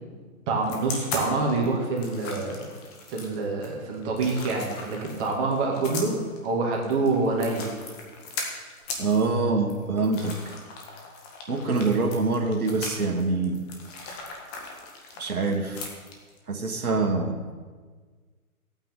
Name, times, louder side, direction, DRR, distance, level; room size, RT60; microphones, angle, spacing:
voice 1, 0.5-2.6 3.1-6.1 6.4-7.7, right 3 dB, 25° right, -1 dB, 2.3 m, -26 dB
sound 1, 0.6-16.4, left 3 dB, 25° left, 1.7 m, -39 dB
voice 2, 9.0-10.5 11.5-13.6 15.2-15.9 16.5-17.4, right 3 dB, 80° right, 4 dB, 1.6 m, -25 dB
16.0 x 8.9 x 3.9 m, 1.5 s
hypercardioid pair, 135°, 43 cm